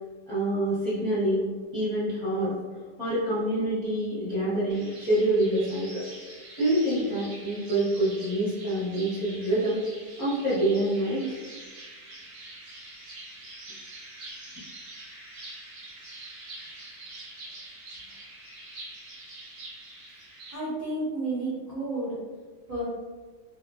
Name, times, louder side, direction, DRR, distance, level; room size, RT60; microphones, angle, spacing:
voice 1, 0.3-2.5 3.0-6.0 6.6-9.8 10.2-11.4, right 1 dB, 25° left, -12 dB, 0.8 m, -26 dB
sound 1, 4.7-20.6, right 2 dB, 65° right, 0.6 m, -45 dB
voice 2, 20.5-22.2 22.7-22.8, right 2 dB, 35° right, -11 dB, 0.9 m, -31 dB
2.7 x 2.4 x 2.3 m, 1.4 s
omnidirectional pair, 1.8 m